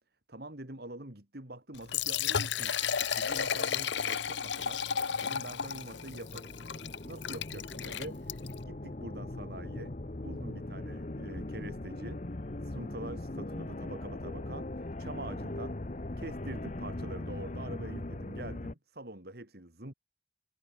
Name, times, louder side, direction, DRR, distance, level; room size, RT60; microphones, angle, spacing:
voice 1, 0.3-4.8 5.2-6.5 7.0-9.9 10.2-12.2 12.6-15.8 16.2-19.9, right 1 dB, 55° right, 2.7 m, -45 dB
Liquid, 1.7-8.6, left 8 dB, 65° left, 0.8 m, -33 dB
Percussion / Church bell, 2.7-7.4, right 4 dB, 25° right, 5.1 m, -55 dB
sound 1, 5.2-18.7, left 2 dB, 40° left, 0.9 m, -40 dB
head